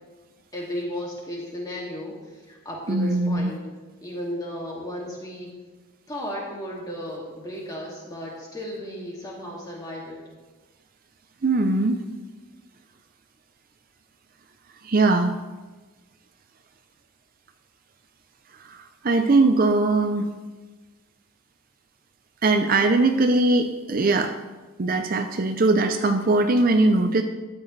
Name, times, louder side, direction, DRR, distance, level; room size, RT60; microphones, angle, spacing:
voice 1, 0.5-3.6 4.0-5.5 6.1-10.2, equal, 20° left, -3 dB, 2.3 m, -34 dB
voice 2, 2.9-3.5 11.4-12.0 14.8-15.4 18.7-20.3 22.4-24.3 24.8-27.2, right 2 dB, 40° right, 6 dB, 0.5 m, -20 dB
13.0 x 9.7 x 3.3 m, 1.3 s
head